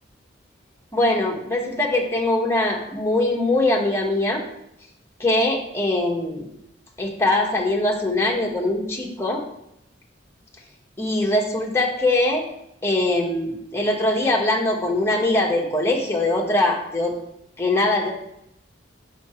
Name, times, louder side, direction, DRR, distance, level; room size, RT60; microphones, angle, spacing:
voice 1, 0.9-4.4 5.2-6.5 7.0-9.4 11.0-12.5 12.8-17.1 17.6-18.1, left 2 dB, 15° left, -1 dB, 1.3 m, -22 dB
7.0 x 6.6 x 4.4 m, 0.78 s
head